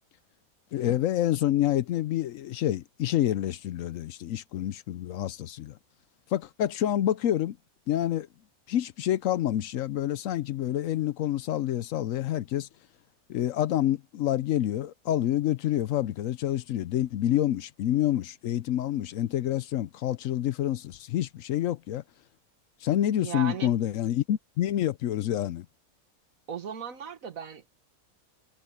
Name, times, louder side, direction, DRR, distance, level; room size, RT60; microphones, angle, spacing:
voice 1, 0.7-5.8 6.3-7.6 7.9-8.3 8.7-12.7 13.3-22.0 22.8-25.7, left 12 dB, 70° left, 0.9 m, -28 dB
voice 2, 23.2-23.8 26.5-27.7, right 8 dB, 70° right, 1.7 m, -37 dB
omnidirectional pair, 1.5 m